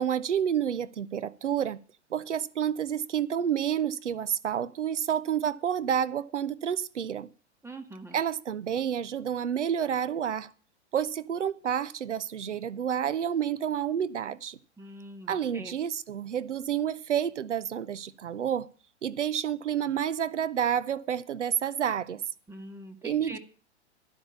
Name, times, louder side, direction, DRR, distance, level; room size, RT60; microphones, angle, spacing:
voice 1, 0.0-1.8 2.1-7.3 8.1-10.5 10.9-14.6 15.3-18.7 19.0-22.2 23.0-23.4, right 9 dB, 90° right, 0.7 m, -29 dB
voice 2, 7.6-8.2 14.8-15.7 22.5-23.4, right 1 dB, 5° right, 1.7 m, -43 dB
12.0 x 8.1 x 6.9 m
hypercardioid pair, 110°, 35 cm